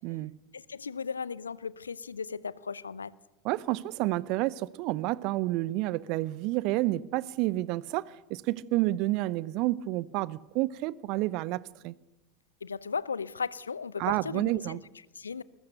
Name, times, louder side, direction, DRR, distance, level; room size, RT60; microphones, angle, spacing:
voice 1, 0.5-3.1 12.6-14.8 15.2-15.4, left 5 dB, 75° left, 0.7 m, -36 dB
voice 2, 3.4-11.9 14.0-14.8, right 18 dB, 45° right, 0.8 m, -30 dB
27.0 x 21.0 x 6.8 m
figure-of-eight pair, 85°, 0 cm